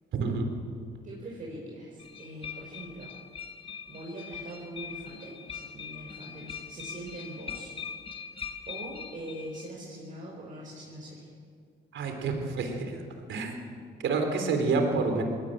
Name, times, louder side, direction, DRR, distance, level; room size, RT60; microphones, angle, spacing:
voice 1, 1.0-3.1 3.6-7.7 8.1-8.4 8.7-11.3, right 1 dB, 40° right, -4 dB, 5.4 m, -42 dB
sound 1, 2.0-9.7, left 7 dB, 30° left, 1.5 m, -42 dB
voice 2, 11.9-12.9 13.3-13.6 14.0-15.2, right 4 dB, 70° right, 5 dB, 3.7 m, -28 dB
21.0 x 18.0 x 8.9 m, 2.1 s
cardioid pair, 90°, 20 cm